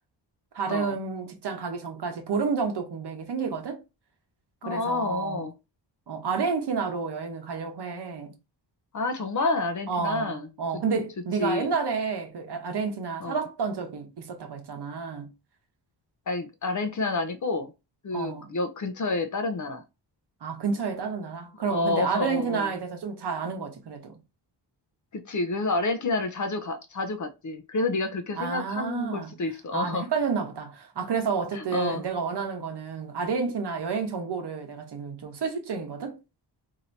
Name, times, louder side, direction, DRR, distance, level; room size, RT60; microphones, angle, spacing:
voice 1, 0.5-3.8 4.6-5.4 6.1-8.3 9.9-15.3 18.1-18.5 20.4-24.1 28.4-29.3 29.7-36.2, right 5 dB, 60° right, 0.9 m, -30 dB
voice 2, 4.6-5.5 8.9-10.5 11.4-11.7 13.2-13.4 16.3-17.7 18.0-19.8 21.7-22.7 25.1-30.1 31.5-32.0, left 3 dB, 40° left, 0.5 m, -29 dB
2.8 x 2.6 x 4.3 m
wide cardioid pair, 150°, 45 cm